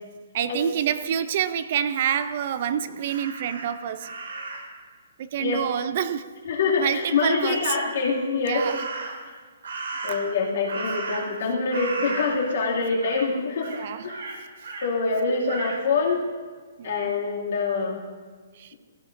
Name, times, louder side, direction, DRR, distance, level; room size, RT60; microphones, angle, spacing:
voice 1, 0.3-4.1 5.2-6.4 6.8-7.8 8.4-8.9 10.1-10.2 13.7-14.2 16.8-17.1 18.5-18.7, right 9 dB, 35° right, 0.3 m, -27 dB
Crow, 3.0-4.8 8.5-9.3 9.6-11.4 11.7-12.7 13.0-13.3 13.6-14.9 15.5-15.8, right 3 dB, 80° right, 2.5 m, -35 dB
voice 2, 6.5-8.6 10.0-14.3 14.8-16.2 16.8-18.0, left 4 dB, 55° left, 2.3 m, -25 dB
16.0 x 13.0 x 2.5 m
hypercardioid pair, 175°, 0 cm